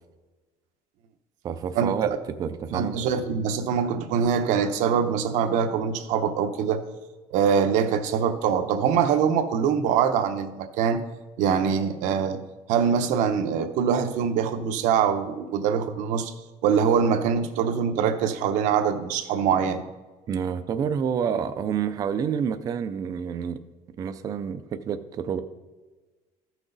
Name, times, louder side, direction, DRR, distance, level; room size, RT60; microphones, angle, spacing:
voice 1, 1.4-2.1 2.4-3.0 20.3-23.6 24.0-25.4, right 7 dB, 25° right, 10 dB, 0.4 m, -28 dB
voice 2, 2.7-6.8 7.3-11.0 11.4-12.4 12.7-16.3 16.6-19.8, right 7 dB, 60° right, 8 dB, 0.8 m, -23 dB
14.0 x 6.1 x 3.9 m, 1.3 s
cardioid pair, 180°, 14 cm